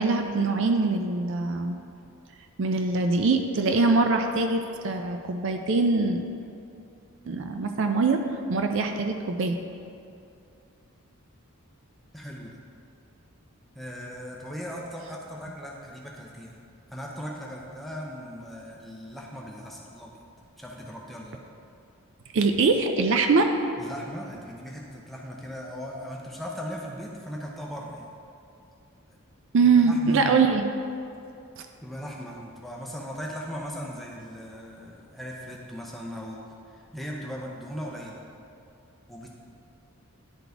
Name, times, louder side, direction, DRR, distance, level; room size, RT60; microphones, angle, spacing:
voice 1, 0.0-1.8 2.6-6.2 7.3-8.2 8.5-9.6 22.3-23.5 29.5-30.6, right 4 dB, 55° right, 5 dB, 0.4 m, -23 dB
voice 2, 12.1-12.6 13.7-16.6 16.9-20.2 20.6-21.4 23.8-28.1 29.1-29.2 29.6-30.4 31.8-36.4 36.7-38.2 39.1-39.3, equal, ahead, -3 dB, 0.7 m, -38 dB
10.5 x 4.0 x 3.4 m, 2.6 s
head